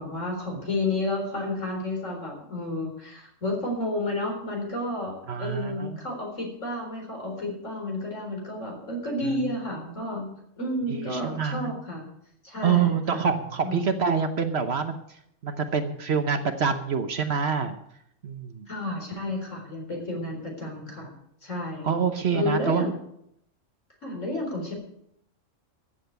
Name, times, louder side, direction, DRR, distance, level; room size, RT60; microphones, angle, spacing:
voice 1, 0.0-10.3 10.6-12.0 12.4-13.3 13.6-14.0 18.7-21.1 21.4-21.9 22.3-23.0 24.0-24.7, left 2 dB, 70° left, 1 dB, 4.5 m, -31 dB
voice 2, 5.3-6.1 9.2-9.5 10.9-11.7 12.6-15.2 15.4-17.7 18.2-18.7 21.8-22.8, right 6 dB, 55° right, 8 dB, 1.1 m, -26 dB
14.0 x 7.9 x 7.9 m, 0.74 s
omnidirectional pair, 1.3 m